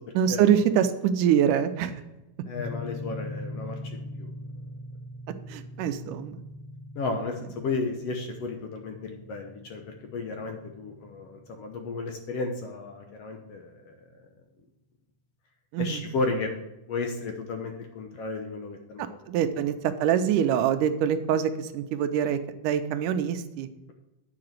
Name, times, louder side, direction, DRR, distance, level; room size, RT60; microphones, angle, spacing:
voice 1, 0.1-1.9 5.5-6.4 15.7-16.0 19.0-23.7, right 9 dB, 85° right, 9 dB, 2.2 m, -25 dB
voice 2, 2.5-4.3 6.9-9.8 10.1-14.0 15.8-16.5 16.9-19.1 19.4-19.6, left 3 dB, 65° left, 4 dB, 1.7 m, -33 dB
sound 1, 2.6-12.7, left 1 dB, 80° left, 2.7 m, -42 dB
9.6 x 4.9 x 7.7 m, 0.97 s
omnidirectional pair, 3.6 m